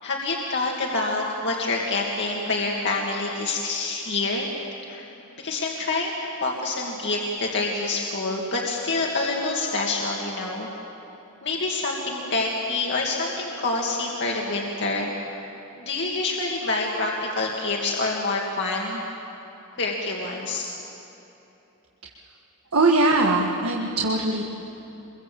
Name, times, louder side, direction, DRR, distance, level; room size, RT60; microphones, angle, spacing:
voice 1, 0.0-4.5 4.8-5.1 5.4-6.1 6.4-10.7 11.4-15.1 15.8-19.0 19.7-20.7, left 3 dB, 55° left, -2 dB, 2.2 m, -27 dB
voice 2, 22.7-24.4, right 2 dB, 80° right, 0 dB, 1.7 m, -21 dB
26.0 x 22.5 x 7.7 m, 3.0 s
head